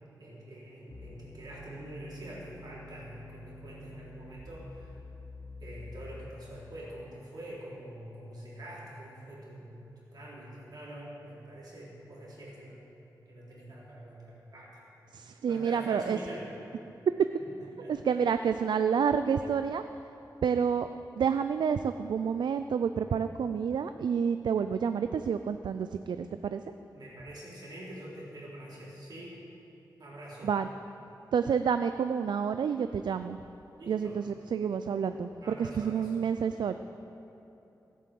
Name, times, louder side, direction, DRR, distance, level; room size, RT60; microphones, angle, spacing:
voice 1, 0.2-5.0 5.6-9.8 10.1-12.8 13.3-14.8 15.5-16.5 17.4-18.2 26.9-29.4 30.0-30.5 33.8-34.2 35.4-36.2, right 1 dB, 65° right, -6 dB, 3.9 m, -45 dB
sound 1, 0.9-6.9, left 2 dB, 40° left, 1.0 m, -48 dB
voice 2, 15.1-16.2 17.9-19.8 20.4-20.9 21.1-26.6 30.4-30.7 31.3-33.4 33.9-36.7, right 7 dB, 80° right, 10 dB, 0.4 m, -29 dB
15.5 x 8.4 x 7.7 m, 2.9 s
wide cardioid pair, 140°, 8 cm